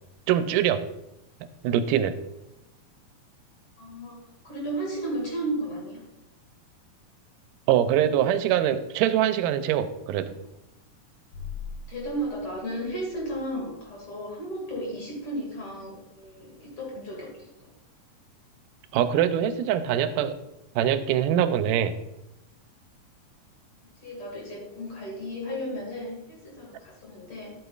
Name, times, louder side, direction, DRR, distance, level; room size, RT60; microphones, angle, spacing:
voice 1, 0.3-0.8 1.6-2.2 7.7-10.3 18.9-20.4 20.8-21.9, right 10 dB, 85° right, 11 dB, 2.2 m, -23 dB
voice 2, 3.8-6.0 11.9-17.5 24.0-27.5, right 1 dB, 45° left, -3 dB, 2.9 m, -34 dB
sound 1, 11.3-13.8, left 5 dB, 65° left, 2.3 m, -42 dB
11.0 x 8.1 x 2.4 m, 0.88 s
omnidirectional pair, 3.7 m